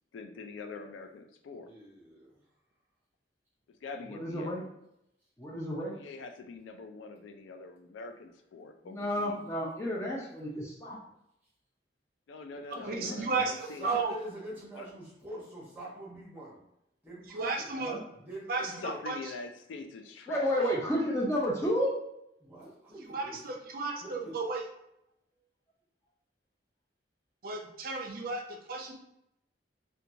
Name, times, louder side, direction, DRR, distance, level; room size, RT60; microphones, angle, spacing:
voice 1, 0.1-1.7 3.8-4.6 6.0-9.4 12.3-14.0 14.8-14.9 17.8-17.9 18.8-20.5, left 4 dB, 85° left, 6 dB, 0.3 m, -44 dB
voice 2, 1.6-2.4 13.6-16.6 17.0-17.7 18.1-19.0 22.4-23.4 23.9-24.3, right 1 dB, 10° right, -6 dB, 0.9 m, -45 dB
voice 3, 4.1-4.7 5.4-6.0 8.8-11.0 12.8-13.2 17.7-18.0 20.3-22.0, equal, 15° left, -3 dB, 0.4 m, -31 dB
voice 4, 12.7-14.1 17.3-18.0 18.5-19.2 23.1-24.6 27.4-28.9, right 4 dB, 50° right, 1 dB, 0.4 m, -33 dB
2.8 x 2.2 x 2.6 m, 0.81 s
head